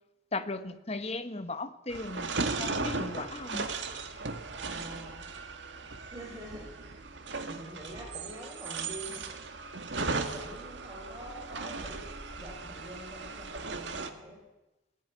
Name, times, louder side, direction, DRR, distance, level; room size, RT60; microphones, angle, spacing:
voice 1, 0.3-2.3 2.6-3.7, left 2 dB, 35° left, 1.2 m, -36 dB
sound 1, 1.9-14.1, right 3 dB, 70° right, 1.9 m, -37 dB
voice 2, 4.5-5.2 6.1-7.0 7.5-9.3 9.9-12.0 12.4-14.4, equal, 20° right, 5.1 m, -45 dB
19.0 x 16.5 x 9.8 m
head